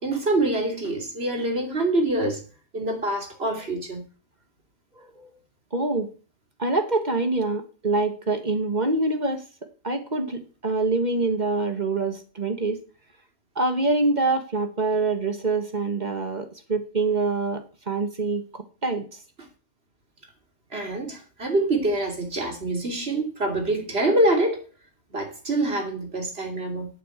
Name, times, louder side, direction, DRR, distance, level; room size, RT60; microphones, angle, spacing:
voice 1, 0.0-2.4 2.7-4.0 20.7-24.6 25.1-26.9, right 2 dB, 50° right, 3.1 m, -25 dB
voice 2, 5.0-5.3 5.7-6.1 6.6-9.4 9.8-12.8 13.5-19.1, right 3 dB, 35° right, 1.6 m, -25 dB
8.6 x 7.7 x 8.0 m
omnidirectional pair, 1.3 m